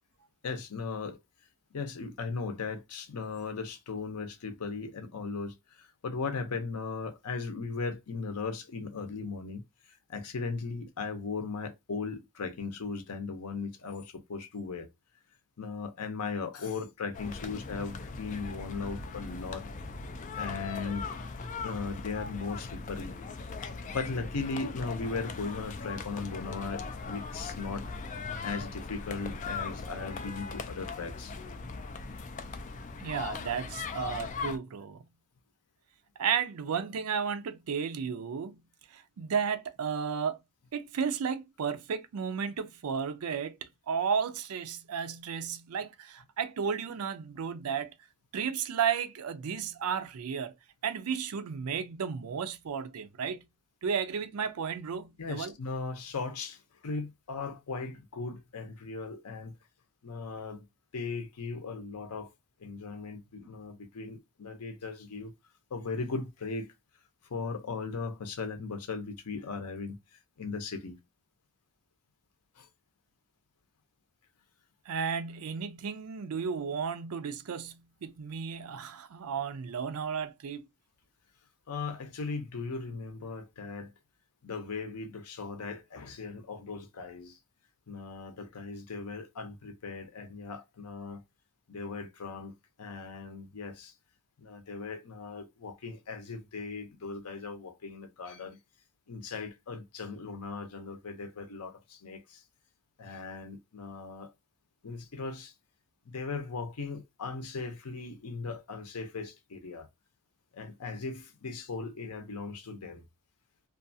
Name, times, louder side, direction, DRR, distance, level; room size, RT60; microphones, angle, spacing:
voice 1, 0.4-1.2 1.7-9.6 9.9-14.9 15.6-19.7 20.4-21.1 21.6-23.2 23.9-27.8 28.4-31.3 55.2-59.6 60.0-60.6 60.9-62.3 62.6-65.3 65.7-66.7 67.3-71.0 72.6-72.7 81.7-83.9 84.4-87.4 87.9-91.2 91.7-92.5 92.8-93.9 94.4-98.6 99.1-102.4 103.0-104.3 104.8-105.5 106.0-109.9 110.5-113.0, left 4 dB, 85° left, 0.6 m, -38 dB
sound 1, 17.1-34.6, left 4 dB, 35° left, 0.3 m, -39 dB
voice 2, 33.0-35.0 36.2-38.6 38.9-40.4 40.7-47.9 48.3-50.5 50.8-53.5 53.8-55.5 74.9-80.6, right 6 dB, 75° right, 0.4 m, -33 dB
2.5 x 2.3 x 2.6 m
head